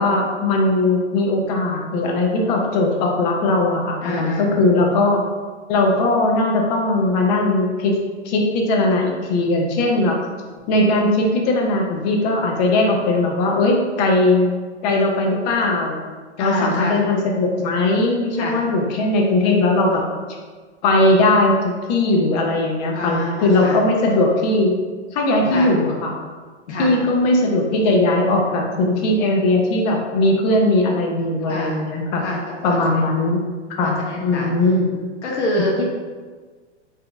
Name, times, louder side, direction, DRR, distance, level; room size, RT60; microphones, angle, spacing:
voice 1, 0.0-5.2 5.7-8.0 8.2-10.2 10.7-14.5 14.8-16.0 16.4-20.0 20.8-24.8 25.1-26.1 26.8-32.2 32.6-33.4 33.8-35.0, left 2 dB, 35° left, 1 dB, 0.7 m, -19 dB
voice 2, 4.0-4.7 16.4-17.0 18.4-18.6 22.9-23.8 25.4-25.7 26.7-27.0 31.5-31.8 32.2-33.1 33.8-34.5 35.2-35.9, left 2 dB, 75° left, -2 dB, 1.2 m, -26 dB
3.8 x 2.8 x 3.4 m, 1.5 s
hypercardioid pair, 140°, 35 cm